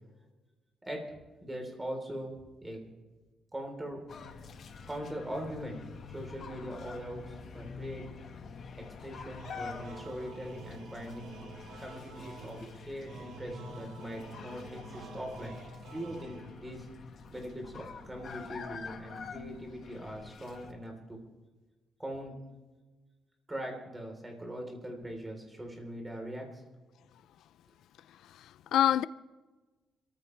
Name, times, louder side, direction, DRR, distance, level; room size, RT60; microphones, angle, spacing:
voice 1, 1.4-2.3 2.6-2.9 3.5-4.0 4.9-5.8 6.1-8.0 8.8-11.3 11.8-15.6 15.9-16.9 17.3-21.2 22.0-22.3 23.5-26.6, right 1 dB, 10° right, 3.8 m, -41 dB
sound 1, 4.1-20.7, left 5 dB, 50° left, 1.6 m, -46 dB
sound 2, 9.4-16.8, right 2 dB, 90° right, 6.0 m, -48 dB
voice 2, 28.1-29.1, left 11 dB, 80° left, 0.4 m, -28 dB
28.5 x 14.5 x 3.3 m
cardioid pair, 150°, 0 cm